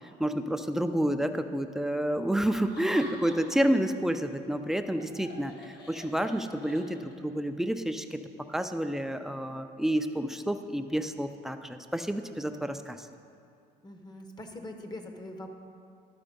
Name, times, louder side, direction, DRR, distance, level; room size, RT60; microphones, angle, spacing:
voice 1, 0.2-8.2 8.5-13.1, right 1 dB, ahead, 7 dB, 0.4 m, -29 dB
Laughter, 2.5-3.8 4.1-7.3, left 2 dB, 75° left, 1.8 m, -48 dB
voice 2, 13.8-15.5, left 1 dB, 25° left, 5 dB, 0.8 m, -43 dB
12.5 x 4.4 x 5.1 m, 2.4 s
cardioid pair, 110°, 17 cm